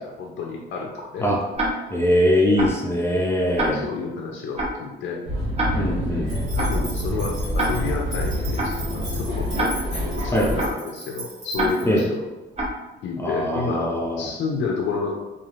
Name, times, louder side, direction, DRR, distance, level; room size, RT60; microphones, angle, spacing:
voice 1, 0.0-1.3 3.7-5.2 5.7-6.0 6.5-9.7 10.2-12.2 13.0-15.1, left 4 dB, 65° left, -1 dB, 0.5 m, -30 dB
Tick-tock, 1.6-1.7 2.6-2.7 3.6-3.7 4.6-4.7 5.6-5.7 6.6-6.7 7.6-7.7 8.6-8.7 9.6-9.7 10.6-10.7 11.6-11.7 12.6-12.7, right 2 dB, 30° right, 0.7 m, -24 dB
voice 2, 1.9-3.9 5.7-6.3 10.3-10.5 11.9-12.1 13.2-14.3, left 1 dB, 10° left, -3 dB, 0.5 m, -21 dB
sound 1, 5.3-10.6, equal, 60° right, 1.3 m, -27 dB
sound 2, 6.3-12.0, right 1 dB, 80° right, 1.2 m, -38 dB
3.1 x 2.4 x 2.4 m, 1.1 s
cardioid pair, 90°, 20 cm